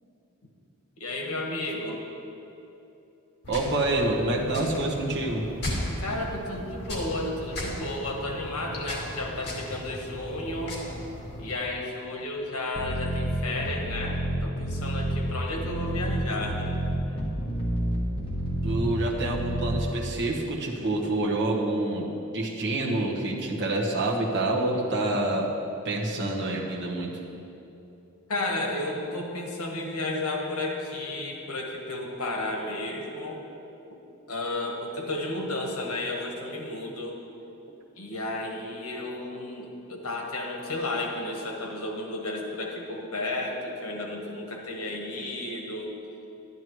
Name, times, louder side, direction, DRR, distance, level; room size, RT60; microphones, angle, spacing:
voice 1, 1.0-2.0 6.0-10.8 11.4-16.7 28.3-33.4 34.3-37.1 38.0-45.9, left 2 dB, 75° left, 1 dB, 1.4 m, -32 dB
sound 1, 3.4-11.5, left 1 dB, 50° left, 2.1 m, -36 dB
voice 2, 3.5-5.5 18.6-22.1 22.3-25.5 25.8-27.1, right 2 dB, 50° right, -2 dB, 1.2 m, -27 dB
sound 2, 12.7-19.8, right 1 dB, 25° left, 1.3 m, -30 dB
11.5 x 10.5 x 3.1 m, 2.9 s
head